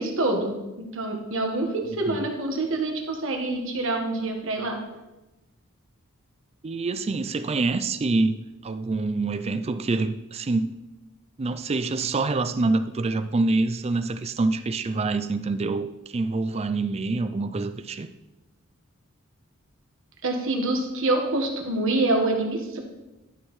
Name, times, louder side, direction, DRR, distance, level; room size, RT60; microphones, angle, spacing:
voice 1, 0.0-4.8 20.2-22.8, right 2 dB, 65° right, 1.5 m, -26 dB
voice 2, 1.9-2.3 6.6-10.7 11.4-18.1, right 3 dB, 30° right, 0.4 m, -26 dB
11.5 x 6.4 x 3.2 m
head